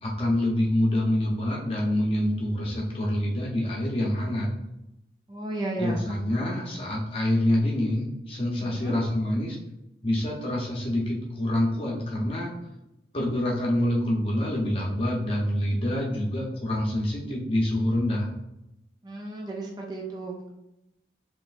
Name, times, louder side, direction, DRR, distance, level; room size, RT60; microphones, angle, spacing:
voice 1, 0.0-4.5 5.8-9.6 10.0-12.5 13.1-18.3, left 1 dB, 30° left, -2 dB, 0.9 m, -26 dB
voice 2, 5.3-6.0 8.6-9.0 19.0-20.6, right 2 dB, 25° right, 0 dB, 0.5 m, -34 dB
5.3 x 3.2 x 2.5 m, 0.89 s
head